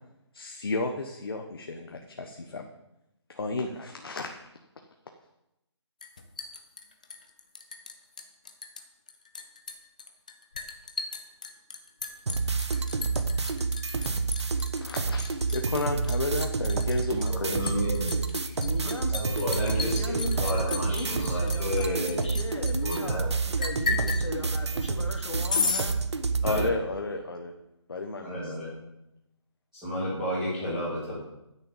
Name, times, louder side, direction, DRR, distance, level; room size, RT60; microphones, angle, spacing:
voice 1, 0.3-2.6 3.3-4.4 14.8-17.8 26.4-27.5 27.9-28.5, left 3 dB, 50° left, 4 dB, 1.1 m, -32 dB
Liquid, 6.0-8.8 9.1-23.0 23.6-24.2 25.5-25.9, left 4 dB, 15° left, 0.6 m, -34 dB
sound 1, 12.3-26.7, right 4 dB, 65° right, 1.2 m, -29 dB
voice 2, 17.5-18.2 19.1-22.2 22.8-23.3 26.4-26.7 28.2-28.7 29.7-31.2, equal, 5° right, -15 dB, 2.2 m, -31 dB
voice 3, 18.6-19.2 19.7-26.0, left 2 dB, 75° left, 2 dB, 3.0 m, -37 dB
12.5 x 6.8 x 7.2 m, 0.87 s
hypercardioid pair, 175°, 15 cm